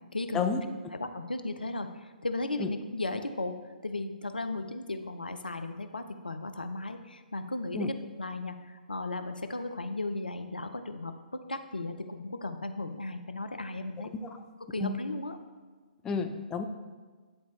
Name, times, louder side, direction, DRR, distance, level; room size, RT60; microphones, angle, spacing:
voice 1, 0.1-0.5 0.9-11.1 11.5-14.1 14.7-15.4, left 2 dB, 80° left, 8 dB, 0.5 m, -36 dB
voice 2, 16.0-16.7, left 5 dB, 10° left, 6 dB, 0.3 m, -30 dB
9.7 x 4.1 x 3.2 m, 1.4 s
figure-of-eight pair, 125°, 5 cm